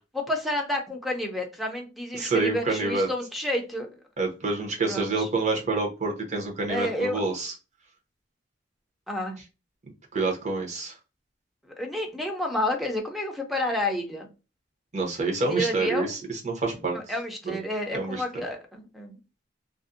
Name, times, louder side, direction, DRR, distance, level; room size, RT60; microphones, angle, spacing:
voice 1, 0.1-4.0 4.9-5.3 6.7-7.2 9.1-9.4 11.8-14.3 15.4-16.2 16.9-19.2, left 1 dB, ahead, 1 dB, 0.5 m, -30 dB
voice 2, 2.1-3.1 4.2-7.5 10.1-10.9 14.9-17.0 17.4-17.5 17.9-18.4, right 3 dB, 40° right, 0 dB, 0.8 m, -27 dB
2.5 x 2.0 x 2.4 m, 0.30 s
head